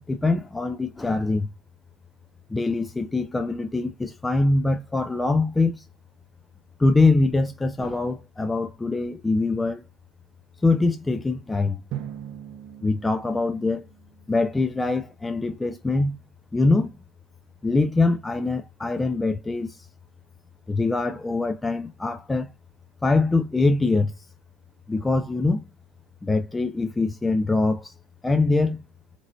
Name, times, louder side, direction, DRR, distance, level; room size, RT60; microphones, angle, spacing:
voice 1, 0.0-1.5 2.5-5.8 6.8-9.8 10.6-11.8 12.8-13.8 14.3-16.2 16.5-16.9 17.6-19.9 20.7-22.5 23.0-24.3 24.9-25.6 26.2-27.9 28.2-28.8, left 3 dB, 10° left, 0.3 m, -23 dB
Drum, 11.9-14.6, right 11 dB, 60° right, 0.8 m, -39 dB
3.9 x 3.0 x 2.6 m
supercardioid pair, 105°, 0 cm